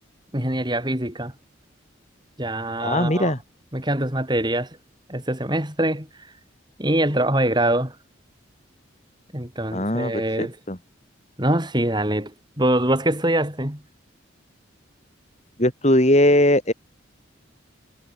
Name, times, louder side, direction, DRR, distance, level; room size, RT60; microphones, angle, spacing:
voice 1, 0.3-1.3 2.4-3.3 3.7-4.7 5.1-6.1 6.8-8.0 9.3-10.6 11.4-13.8, right 1 dB, 20° right, 4.3 m, -24 dB
voice 2, 2.8-3.4 9.7-10.8 15.6-16.7, left 1 dB, 35° left, 5.0 m, -20 dB
head